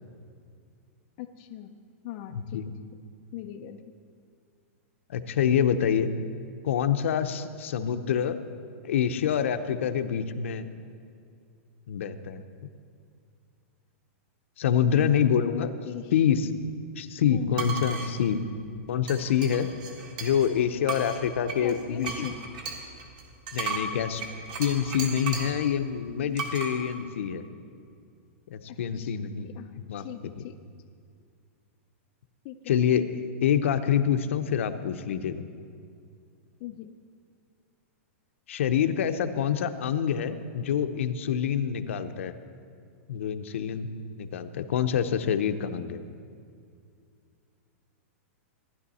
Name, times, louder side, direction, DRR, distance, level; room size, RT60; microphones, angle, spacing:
voice 1, 1.2-1.8 2.0-2.7 3.3-3.8 15.2-16.1 17.2-17.5 21.6-22.4 28.7-29.1 29.4-30.6 32.4-32.7 36.6-36.9, left 12 dB, 25° left, 5 dB, 0.4 m, -40 dB
voice 2, 2.3-2.7 5.1-6.1 6.6-8.4 8.8-10.7 11.9-12.4 14.6-15.7 16.1-16.5 16.9-18.4 18.9-19.7 20.2-22.3 23.5-24.2 24.6-27.4 28.5-29.5 29.8-30.0 30.4-30.5 32.7-33.1 33.4-35.4 38.5-42.3 43.1-43.9 44.2-46.0, left 8 dB, 65° left, 10 dB, 0.7 m, -26 dB
sound 1, 17.5-18.1 19.1-20.5 20.9-25.6 26.4-26.7, right 5 dB, 35° right, 1.5 m, -35 dB
15.0 x 10.5 x 4.2 m, 2.3 s
supercardioid pair, 180°, 7 cm